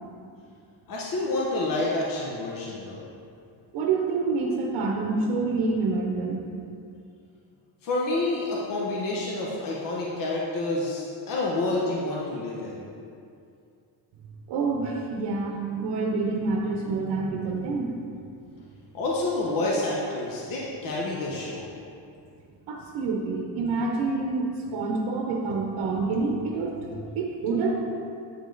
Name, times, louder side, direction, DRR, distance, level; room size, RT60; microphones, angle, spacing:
voice 1, 0.9-3.0 7.8-12.9 18.9-21.7, left 2 dB, 45° left, -4 dB, 1.1 m, -28 dB
voice 2, 3.7-6.4 14.5-17.9 22.7-26.9 27.1-27.8, right 3 dB, 65° right, 0 dB, 0.9 m, -27 dB
8.6 x 5.3 x 3.9 m, 2.5 s
cardioid pair, 145°, 45 cm